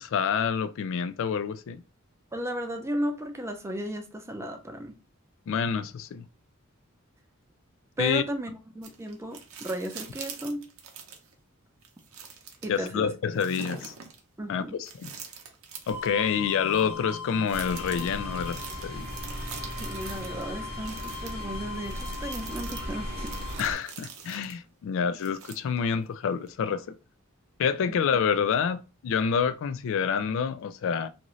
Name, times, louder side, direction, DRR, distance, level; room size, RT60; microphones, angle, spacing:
voice 1, 0.0-1.8 5.5-6.2 8.0-8.2 12.7-13.9 14.5-15.1 15.9-19.1 23.6-26.9 27.6-31.1, left 6 dB, 65° left, 0.3 m, -28 dB
voice 2, 2.3-4.9 8.0-8.5 8.7-10.7 12.6-13.1 14.4-14.8 19.8-23.3 27.9-28.0, equal, 15° right, 0.5 m, -34 dB
sound 1, 8.8-11.3 11.8-12.9 13.4-14.2 14.8-16.1 16.7-16.9 17.5-20.4 20.8-24.6 25.2-25.9 26.5-26.6, right 6 dB, 75° right, 0.7 m, -44 dB
sound 2, 15.9-23.6, left 6 dB, 25° left, 1.1 m, -40 dB
sound 3, 17.5-23.7, right 1 dB, 45° right, 0.8 m, -38 dB
2.6 x 2.5 x 3.0 m
head